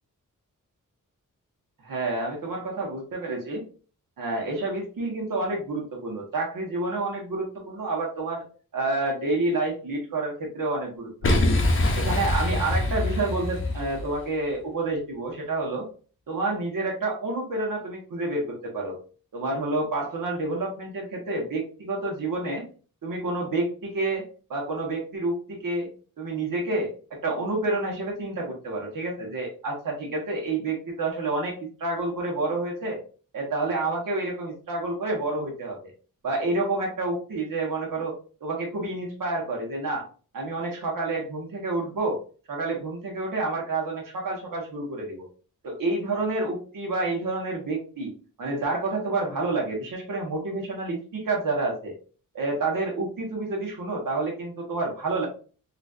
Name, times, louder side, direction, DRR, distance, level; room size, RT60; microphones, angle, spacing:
voice 1, 1.8-3.6 4.2-8.4 8.7-11.6 11.9-15.9 16.3-19.0 19.3-22.6 23.0-24.2 24.5-25.9 26.2-33.0 33.3-35.9 36.2-38.1 38.4-40.1 40.3-42.2 42.5-45.3 45.6-48.1 48.4-51.9 52.3-55.3, right 2 dB, 85° right, -1 dB, 1.1 m, -29 dB
Boom, 11.2-14.2, left 2 dB, 40° left, 0.5 m, -24 dB
3.9 x 2.5 x 2.4 m, 0.38 s
wide cardioid pair, 160°, 32 cm